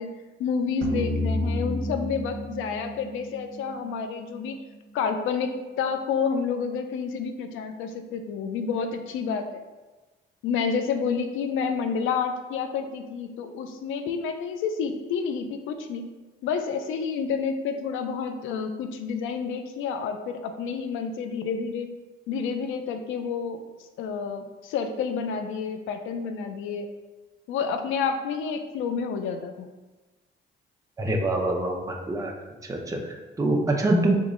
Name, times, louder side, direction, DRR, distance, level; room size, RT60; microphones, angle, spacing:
voice 1, 0.0-4.6 4.9-9.6 10.4-16.1 16.4-21.9 22.3-23.6 24.0-26.9 27.5-29.7, left 6 dB, 90° left, 7 dB, 0.5 m, -29 dB
sound 1, 0.8-4.1, left 1 dB, 90° right, 0.7 m, -30 dB
voice 2, 31.0-32.3 32.6-34.1, right 1 dB, 15° right, 0 dB, 0.6 m, -25 dB
3.8 x 3.0 x 3.7 m, 1.2 s
cardioid pair, 90°, 20 cm